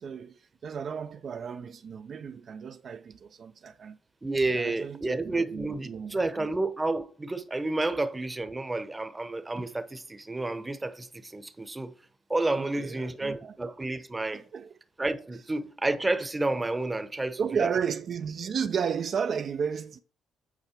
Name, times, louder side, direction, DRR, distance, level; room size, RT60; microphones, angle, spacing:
voice 1, 0.0-4.0 4.5-6.5 12.5-13.6 14.3-14.8 17.4-20.0, right 7 dB, 55° right, 0.4 m, -33 dB
voice 2, 4.2-11.9 12.3-14.4 15.0-17.7, right 2 dB, 15° right, 0.8 m, -30 dB
8.1 x 4.5 x 4.4 m
cardioid pair, 90°, 0 cm